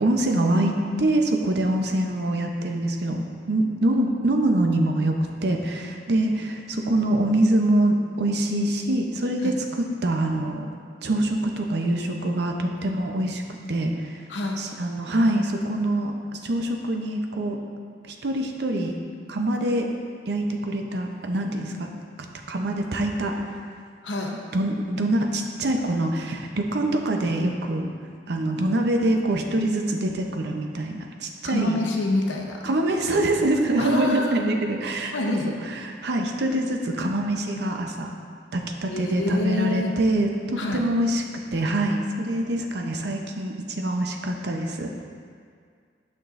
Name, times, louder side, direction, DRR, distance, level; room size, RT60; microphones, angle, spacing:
voice 1, 0.0-0.7 1.0-10.7 11.0-13.4 13.7-14.2 14.6-17.6 18.1-18.9 19.3-19.9 20.3-21.9 22.5-23.6 24.3-27.9 28.3-31.8 32.6-38.1 38.5-41.2 41.5-44.9, right 1 dB, 65° right, 3 dB, 0.6 m, -25 dB
voice 2, 14.3-14.6 24.0-24.3 31.4-32.6 33.1-33.2 33.8-34.3 35.1-35.5 38.8-40.0 40.6-40.8, left 2 dB, 85° left, 0 dB, 0.9 m, -27 dB
9.5 x 6.0 x 2.5 m, 2.1 s
head